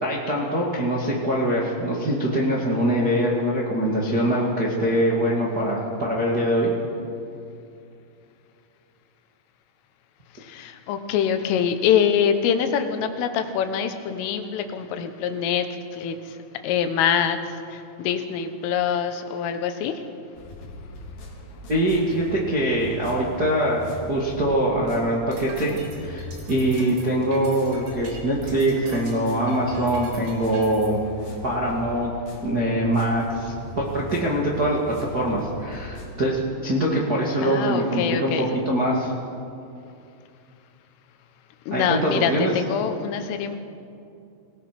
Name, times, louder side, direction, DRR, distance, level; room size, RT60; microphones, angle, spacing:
voice 1, 0.0-6.7 21.7-31.0 31.4-32.1 32.4-39.1 41.7-42.5, right 1 dB, 50° right, -4 dB, 1.1 m, -23 dB
voice 2, 10.4-16.4 16.6-20.0 37.4-38.5 41.7-43.6, left 8 dB, 85° left, 8 dB, 3.7 m, -25 dB
sound 1, 20.3-36.1, left 1 dB, 50° left, 5.2 m, -40 dB
sound 2, 25.1-30.9, right 3 dB, 70° right, 5.8 m, -43 dB
26.5 x 18.5 x 6.0 m, 2.6 s
omnidirectional pair, 5.6 m